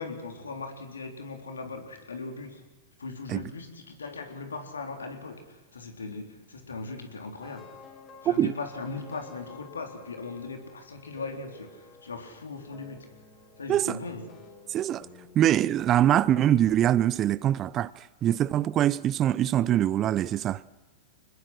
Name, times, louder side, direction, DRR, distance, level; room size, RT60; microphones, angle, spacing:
voice 1, 0.0-2.6 3.0-7.7 8.2-13.1 13.6-14.4, left 3 dB, 90° left, 3.8 m, -39 dB
sound 1, 7.4-16.3, left 4 dB, 35° left, 6.6 m, -52 dB
voice 2, 14.7-15.1 15.3-20.6, right 11 dB, 35° right, 0.7 m, -23 dB
25.5 x 21.0 x 6.3 m
hypercardioid pair, 105°, 0 cm